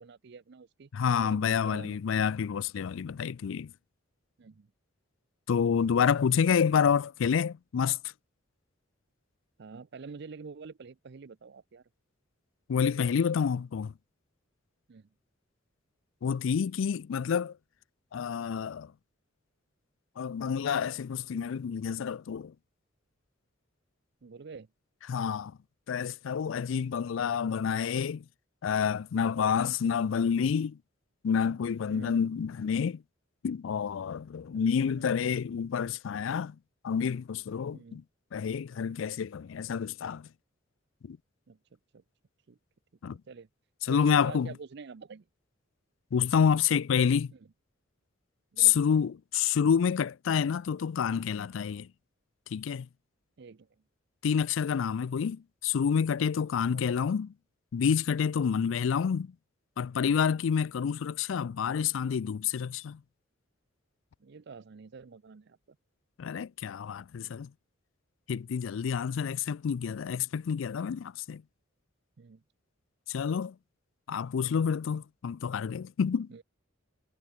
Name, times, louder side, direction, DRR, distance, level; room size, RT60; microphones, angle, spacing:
voice 1, 0.0-2.0 4.4-4.7 9.6-11.8 14.9-15.1 24.2-24.7 29.6-29.8 31.9-32.2 34.5-34.6 34.9-35.1 37.7-38.0 41.5-42.0 42.5-42.6 43.3-43.5 43.9-45.3 47.3-47.4 48.5-48.8 53.4-53.7 56.7-57.1 64.2-65.8 72.2-72.4 76.3-76.4, right 5 dB, 55° right, 0.5 m, -47 dB
voice 2, 0.9-3.7 5.5-8.0 12.7-13.9 16.2-17.5 18.1-18.9 20.2-22.5 25.1-25.5 25.9-28.2 28.6-30.8 31.2-33.0 33.4-36.6 36.8-38.0 38.3-40.3 41.0-41.2 43.0-43.2 43.9-44.5 46.1-47.3 48.6-51.9 52.5-52.9 54.2-57.3 57.7-59.3 59.8-63.0 66.2-67.5 68.3-71.4 73.1-73.6 74.1-76.3, left 7 dB, 75° left, 0.4 m, -28 dB
head